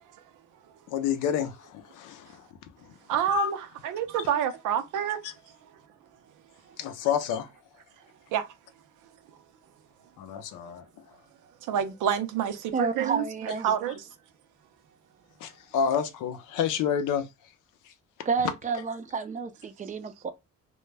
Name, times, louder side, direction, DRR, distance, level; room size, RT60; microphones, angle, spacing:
voice 1, 0.9-3.0 3.3-3.5 4.2-4.3 5.2-5.3 6.8-7.5 10.2-10.9 15.4-17.3 17.8-17.9, left 8 dB, 85° left, 0.5 m, -29 dB
voice 2, 3.1-5.2 8.3-8.5 11.6-13.2 13.6-14.1, right 9 dB, 85° right, 0.5 m, -28 dB
voice 3, 12.7-13.7 18.3-20.3, right 5 dB, 25° right, 0.4 m, -30 dB
2.2 x 2.0 x 3.1 m
cardioid pair, 90°, 30 cm